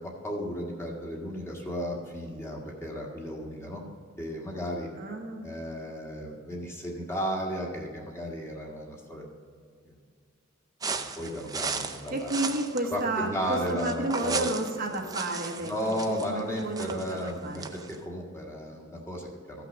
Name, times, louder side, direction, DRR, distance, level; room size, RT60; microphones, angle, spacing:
voice 1, 0.0-3.8 4.2-4.9 5.4-9.2 9.8-9.9 11.2-12.4 12.9-14.5 15.6-19.7, equal, 15° left, -2 dB, 1.7 m, -34 dB
voice 2, 5.0-5.4 12.1-16.0 16.3-17.7, right 2 dB, 45° right, 1 dB, 1.2 m, -31 dB
sound 1, 10.8-18.0, right 5 dB, 20° right, 0.5 m, -36 dB
14.0 x 6.0 x 6.2 m, 2.1 s
head